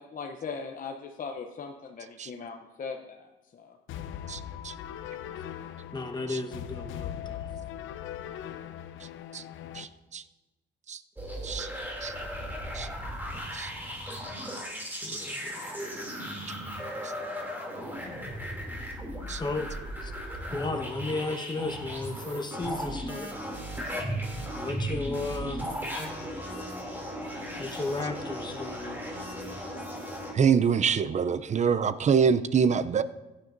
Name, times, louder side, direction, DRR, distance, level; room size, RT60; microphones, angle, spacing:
voice 1, 0.0-3.8, left 5 dB, 45° left, 3 dB, 0.7 m, -39 dB
sound 1, 3.9-9.8, left 10 dB, 80° left, 0.6 m, -40 dB
voice 2, 4.3-4.7 6.3-6.4 9.3-9.4 9.7-9.9 10.1-10.2 10.9-11.0 11.4-11.7 12.0-12.1 12.7-12.9 13.5-13.7 15.1-15.2 19.3-19.4 30.3-33.0, right 6 dB, 35° right, 13 dB, 0.5 m, -25 dB
voice 3, 5.9-7.5 14.9-15.9 19.4-19.7 20.0-20.1 20.5-23.3 24.5-25.6 27.6-29.0, left 3 dB, 20° left, 3 dB, 1.2 m, -34 dB
sound 2, 11.2-30.3, equal, 10° right, 2.7 m, -36 dB
15.5 x 9.6 x 2.6 m, 1.1 s
cardioid pair, 90°, 20 cm